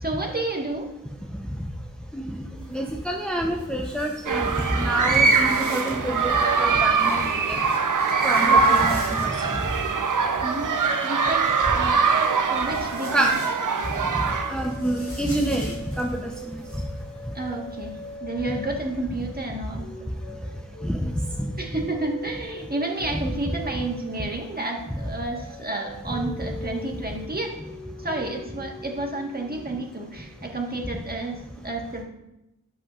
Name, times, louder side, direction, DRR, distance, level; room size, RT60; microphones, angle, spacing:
voice 1, 0.0-0.9 8.4-8.9 10.4-10.7 11.0-11.4 11.7-12.2 12.5-13.3 17.3-19.8 21.6-27.5 28.0-31.4 31.6-32.0, right 2 dB, 30° right, 0 dB, 1.4 m, -31 dB
voice 2, 2.1-7.6 8.2-9.7 13.1-13.4 14.1-16.8 20.8-21.5 23.7-23.8, right 1 dB, 5° left, 0 dB, 0.7 m, -28 dB
sound 1, 2.6-10.7 11.7-18.2, left 1 dB, 40° left, 2.0 m, -45 dB
sound 2, 4.3-14.8, right 5 dB, 70° right, 0.6 m, -22 dB
sound 3, 12.0-19.4 19.7-30.8, left 1 dB, 75° left, 2.4 m, -42 dB
10.5 x 5.7 x 2.4 m, 0.90 s
wide cardioid pair, 70°, 33 cm